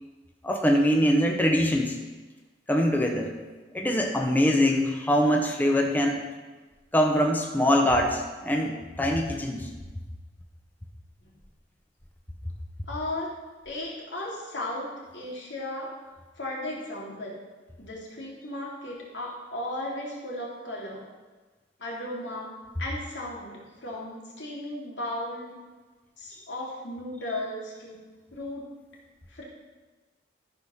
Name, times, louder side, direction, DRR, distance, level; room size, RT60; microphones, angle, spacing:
voice 1, 0.4-2.0 2.7-3.3 3.7-6.2 6.9-9.7, equal, 10° left, 2 dB, 0.8 m, -23 dB
voice 2, 12.9-13.3 13.6-15.9 16.4-17.4 17.8-21.0 21.8-25.6 26.2-28.0 28.3-28.7 29.3-29.4, left 1 dB, 90° left, -3 dB, 2.8 m, -35 dB
13.5 x 4.8 x 5.7 m, 1.3 s
head